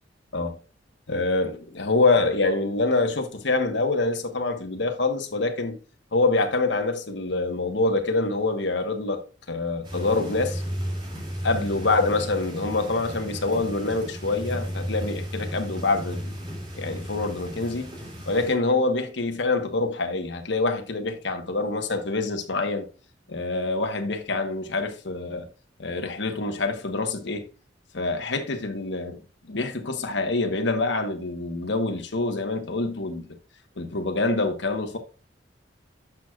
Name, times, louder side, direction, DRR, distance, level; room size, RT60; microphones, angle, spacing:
voice 1, 1.1-5.8 6.1-9.2 9.5-10.6 11.4-16.3 16.7-18.0 18.3-22.9 23.3-25.5 25.8-27.5 27.9-29.2 29.5-33.3 33.8-35.0, left 3 dB, 75° left, 1.2 m, -26 dB
sound 1, 9.8-18.5, equal, 25° right, 2.6 m, -34 dB
11.0 x 6.1 x 2.4 m
head